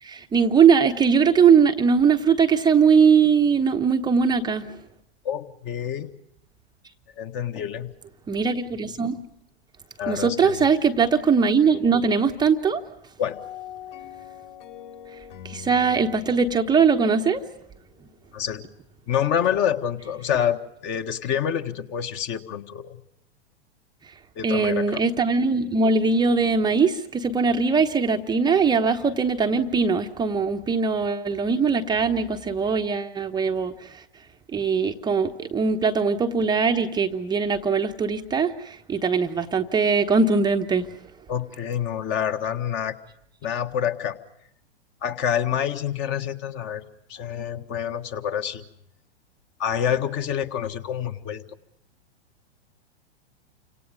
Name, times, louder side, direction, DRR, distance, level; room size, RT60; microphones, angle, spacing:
voice 1, 0.0-4.8 8.3-9.2 10.1-12.8 15.4-17.4 24.1-24.2 24.4-34.0 34.5-40.9, right 5 dB, 10° right, 4 dB, 0.9 m, -21 dB
voice 2, 5.2-6.1 7.2-7.9 10.0-10.6 13.2-13.4 18.3-18.7 19.1-23.0 24.3-25.0 41.3-42.9 43.4-44.2 45.0-46.8 47.1-48.6 49.6-51.4, left 9 dB, 35° left, 7 dB, 1.6 m, -27 dB
sound 1, 13.3-18.4, left 10 dB, 50° left, 4.0 m, -43 dB
29.5 x 26.0 x 5.1 m, 0.78 s
figure-of-eight pair, 105°, 33 cm